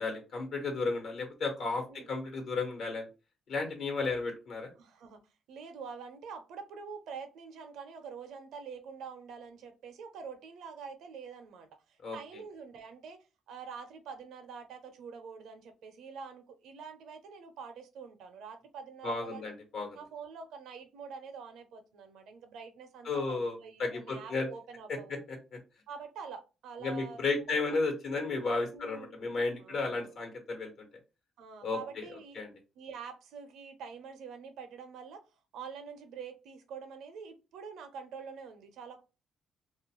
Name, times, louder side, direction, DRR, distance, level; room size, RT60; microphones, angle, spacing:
voice 1, 0.0-3.1 3.5-4.7 12.0-12.2 19.0-20.0 23.0-24.5 25.1-25.6 26.8-30.9 31.6-32.0 32.3-32.5, left 3 dB, 70° left, 1.1 m, -33 dB
voice 2, 4.8-5.2 5.5-19.5 19.9-25.2 25.9-27.6 28.7-30.2 31.4-32.4 32.8-35.2 35.5-39.0, right 6 dB, 80° right, 0.5 m, -46 dB
2.4 x 2.3 x 2.9 m
cardioid pair, 90°, 0 cm